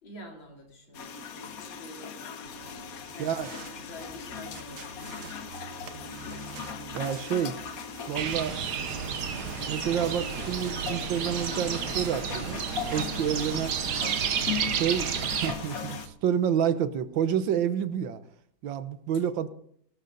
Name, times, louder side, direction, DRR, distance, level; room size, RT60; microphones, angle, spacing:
voice 1, 0.0-2.3 2.5-5.4, left 1 dB, 90° left, 4.2 m, -48 dB
sound 1, 0.9-16.1, left 7 dB, 55° left, 1.3 m, -39 dB
sound 2, 2.4-16.1, right 6 dB, 50° right, 1.4 m, -47 dB
voice 2, 3.2-3.5 6.9-7.6 8.1-8.6 9.7-12.6 12.9-13.7 14.7-18.2 18.6-19.5, right 8 dB, 80° right, 1.7 m, -29 dB
sound 3, 8.1-15.5, right 7 dB, 65° right, 1.6 m, -31 dB
19.0 x 12.5 x 4.0 m
omnidirectional pair, 2.1 m